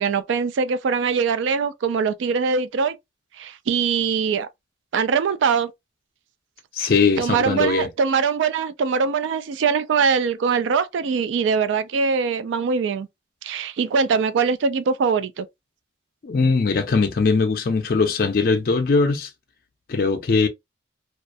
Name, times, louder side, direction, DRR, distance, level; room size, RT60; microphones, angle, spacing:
voice 1, 0.0-3.0 3.4-4.5 4.9-5.7 6.8-6.9 7.2-13.1 13.4-15.5, right 5 dB, 85° right, 0.3 m, -22 dB
voice 2, 6.7-7.9 16.2-19.3 19.9-20.5, left 4 dB, 50° left, 0.4 m, -20 dB
2.3 x 2.1 x 2.5 m
head